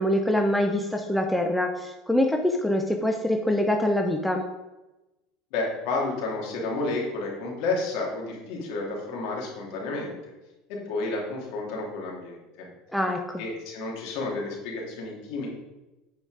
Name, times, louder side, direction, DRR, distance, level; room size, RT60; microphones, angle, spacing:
voice 1, 0.0-4.4 12.9-13.4, left 1 dB, 5° left, 3 dB, 0.8 m, -24 dB
voice 2, 5.5-10.1 10.7-12.7 13.4-15.5, left 3 dB, 65° left, -2 dB, 3.1 m, -31 dB
8.9 x 5.1 x 5.1 m, 1.0 s
supercardioid pair, 125°, 0 cm